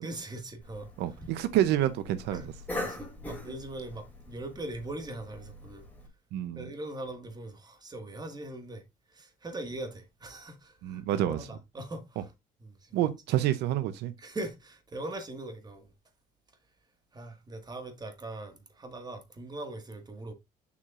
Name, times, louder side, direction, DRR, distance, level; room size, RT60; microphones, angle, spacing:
voice 1, 0.0-0.9 1.2-1.3 2.3-2.5 2.8-5.8 6.5-8.8 9.1-12.3 12.6-13.1 14.2-15.9 17.1-20.3, right 2 dB, 25° right, 1.8 m, -41 dB
Cough, 0.6-6.1, left 1 dB, 10° left, 2.8 m, -42 dB
voice 2, 1.0-2.4 6.3-6.6 10.8-11.4 12.9-14.1, right 12 dB, 85° right, 0.7 m, -28 dB
7.1 x 6.4 x 2.5 m
cardioid pair, 110°, 17 cm